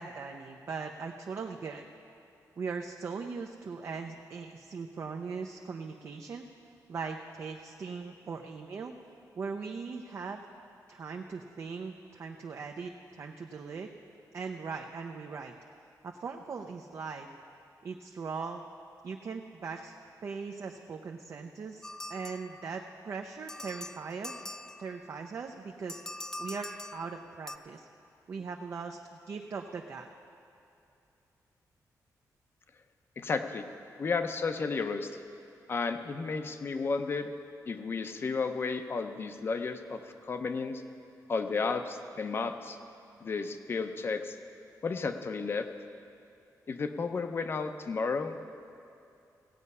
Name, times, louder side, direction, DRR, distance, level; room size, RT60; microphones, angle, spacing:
voice 1, 0.0-1.9 2.6-6.4 6.9-8.9 9.4-10.4 10.9-13.9 14.3-15.5 16.0-17.3 17.8-18.6 19.0-19.9 20.2-24.5 24.8-26.0 26.4-27.9 28.3-29.0 29.3-30.1, right 5 dB, 45° right, 3 dB, 0.6 m, -39 dB
sound 1, 21.8-23.0 23.5-25.2 25.9-27.6, left 1 dB, 10° left, 0.3 m, -43 dB
voice 2, 33.2-33.7 34.0-35.2 35.7-37.3 37.7-40.8 41.3-42.8 43.2-44.4 44.8-45.7 46.7-48.6, left 4 dB, 40° left, 8 dB, 0.7 m, -33 dB
17.0 x 8.4 x 5.5 m, 2.7 s
wide cardioid pair, 150°, 6 cm